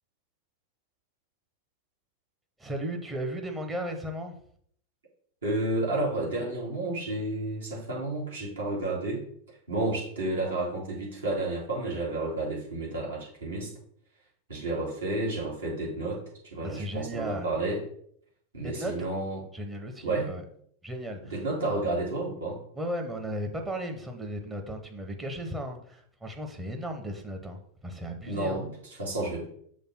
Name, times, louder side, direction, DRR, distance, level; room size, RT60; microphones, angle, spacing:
voice 1, 2.6-4.4 16.6-17.5 18.6-18.9 19.5-20.4 20.8-21.4 22.8-28.6, equal, 15° right, 4 dB, 0.9 m, -35 dB
voice 2, 5.4-9.2 9.5-13.7 14.5-17.8 18.5-19.4 20.0-20.3 21.2-22.6 28.3-29.5, right 2 dB, 70° right, -4 dB, 2.7 m, -31 dB
6.3 x 3.4 x 5.8 m, 0.64 s
figure-of-eight pair, 90°, 0 cm